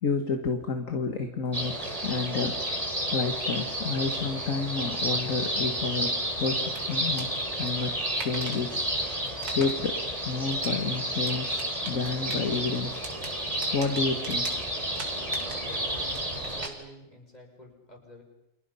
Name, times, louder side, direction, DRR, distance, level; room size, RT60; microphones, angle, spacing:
voice 1, 0.0-2.6 3.1-13.0 13.7-14.6, left 4 dB, 45° left, 5 dB, 2.0 m, -30 dB
sound 1, 1.5-16.7, right 1 dB, 15° right, 4.1 m, -31 dB
sound 2, 6.5-16.7, right 4 dB, 65° right, 3.3 m, -44 dB
voice 2, 15.6-18.2, equal, 20° left, 2 dB, 6.0 m, -49 dB
30.0 x 27.0 x 5.7 m, 0.89 s
omnidirectional pair, 2.0 m